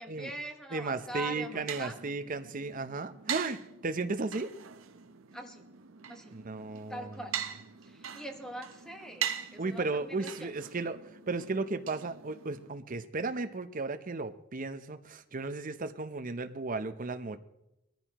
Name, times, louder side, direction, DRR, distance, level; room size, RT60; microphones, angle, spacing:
voice 1, 0.0-2.0 5.3-5.6 6.1-6.4 6.9-7.4 7.8-10.5, right 1 dB, 5° left, 4 dB, 1.2 m, -43 dB
voice 2, 0.7-4.5 6.3-7.0 9.6-11.0 11.3-17.4, right 3 dB, 40° right, 9 dB, 0.7 m, -35 dB
sound 1, 1.1-12.7, right 9 dB, 75° right, 0.8 m, -42 dB
21.0 x 14.5 x 3.0 m, 0.88 s
head